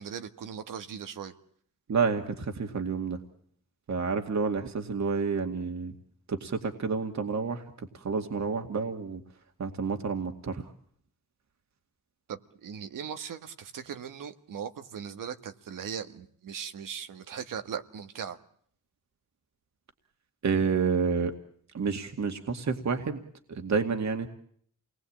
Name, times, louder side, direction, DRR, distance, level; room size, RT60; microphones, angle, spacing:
voice 1, 0.0-1.3 12.3-18.4, right 7 dB, 90° right, 8 dB, 1.7 m, -39 dB
voice 2, 1.9-3.2 3.9-5.9 6.3-9.2 9.6-10.6 20.4-21.3 21.7-23.2 23.5-24.3, right 5 dB, 60° right, 5 dB, 2.3 m, -29 dB
28.0 x 20.0 x 8.8 m, 0.63 s
cardioid pair, 70°, 31 cm